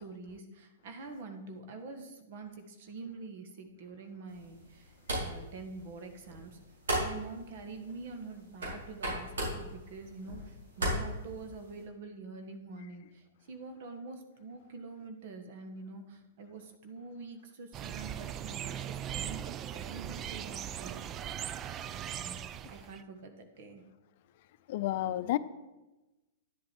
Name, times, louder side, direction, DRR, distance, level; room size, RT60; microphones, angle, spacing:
voice 1, 0.0-6.6 7.0-21.4 21.9-23.8, right 3 dB, 55° right, 1.4 m, -46 dB
sound 1, 4.3-11.8, right 1 dB, 90° right, 4.1 m, -38 dB
sound 2, 17.7-23.0, right 10 dB, 25° right, 0.4 m, -39 dB
voice 2, 24.7-25.4, left 14 dB, 55° left, 0.5 m, -30 dB
10.5 x 7.7 x 4.5 m
hypercardioid pair, 135°, 0 cm